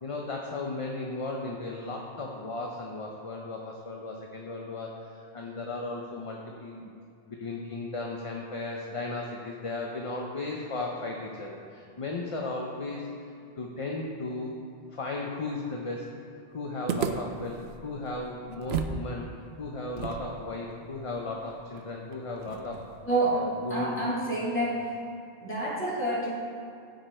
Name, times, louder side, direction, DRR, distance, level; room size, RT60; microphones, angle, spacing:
voice 1, 0.0-6.9 7.3-13.1 13.6-14.5 14.9-16.2 16.5-19.3 19.6-22.9 23.3-23.9, left 2 dB, 35° left, -1 dB, 0.7 m, -35 dB
sound 1, 16.9-19.0 19.3-19.4 20.0-23.1, right 6 dB, 70° right, 0.8 m, -35 dB
voice 2, 23.0-23.4 23.7-25.0 25.4-26.3, right 2 dB, 10° left, -7 dB, 2.5 m, -28 dB
15.0 x 5.3 x 4.3 m, 2.5 s
omnidirectional pair, 1.1 m